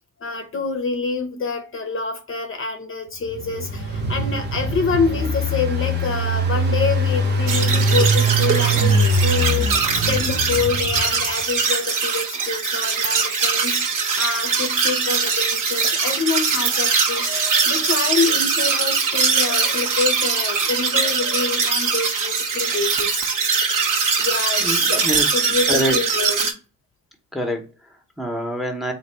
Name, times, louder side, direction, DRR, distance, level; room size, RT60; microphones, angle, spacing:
voice 1, 0.2-23.2 24.2-26.5, left 4 dB, 40° left, 0.6 m, -26 dB
Engine, 3.3-11.3, right 1 dB, 35° right, 0.8 m, -22 dB
sound 1, 7.5-26.5, right 5 dB, 80° right, 0.9 m, -22 dB
voice 2, 24.6-25.3 25.7-26.0 27.3-28.9, equal, ahead, 0.7 m, -26 dB
3.9 x 2.5 x 4.4 m
wide cardioid pair, 140°, 31 cm